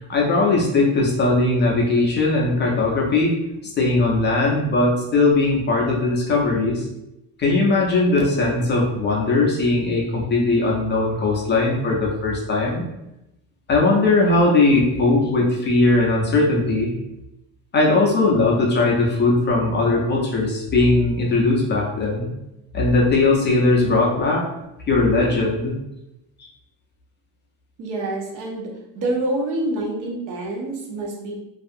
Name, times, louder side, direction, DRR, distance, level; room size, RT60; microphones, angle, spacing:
voice 1, 0.1-3.3 3.8-6.9 7.4-12.8 13.7-16.9 17.7-22.3 22.7-24.4 24.9-25.7, left 2 dB, 30° left, -2 dB, 0.4 m, -19 dB
voice 2, 27.8-28.7 28.9-31.3, right 2 dB, 60° right, -1 dB, 0.7 m, -26 dB
2.6 x 2.3 x 2.5 m, 0.90 s
cardioid pair, 150°, 36 cm